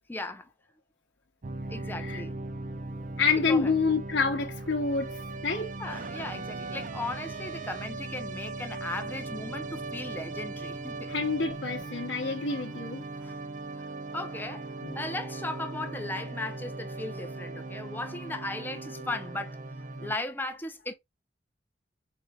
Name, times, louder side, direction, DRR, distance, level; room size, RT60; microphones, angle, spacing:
voice 1, 0.1-0.5 1.7-2.3 3.5-3.7 5.8-11.1 12.5-12.6 13.2-13.4 13.8-19.6 20.0-20.9, left 2 dB, 10° left, 0.6 m, -37 dB
sound 1, 1.4-20.2, right 2 dB, 45° right, 0.6 m, -38 dB
voice 2, 3.2-5.2 5.4-5.7 11.1-13.1 14.8-15.0, left 4 dB, 80° left, 0.9 m, -27 dB
4.3 x 4.0 x 2.3 m
head